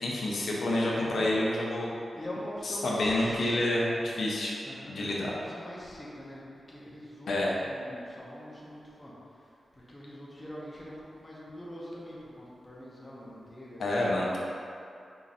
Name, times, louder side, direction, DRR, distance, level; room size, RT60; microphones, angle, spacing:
voice 1, 0.0-1.9 2.6-4.5 4.9-5.3 7.3-7.5 13.8-14.4, left 1 dB, 75° left, -4 dB, 0.7 m, -28 dB
voice 2, 2.1-4.0 4.6-6.4 6.7-14.0, equal, 15° left, -6 dB, 0.8 m, -44 dB
4.7 x 2.6 x 4.1 m, 2.5 s
wide cardioid pair, 135°, 0 cm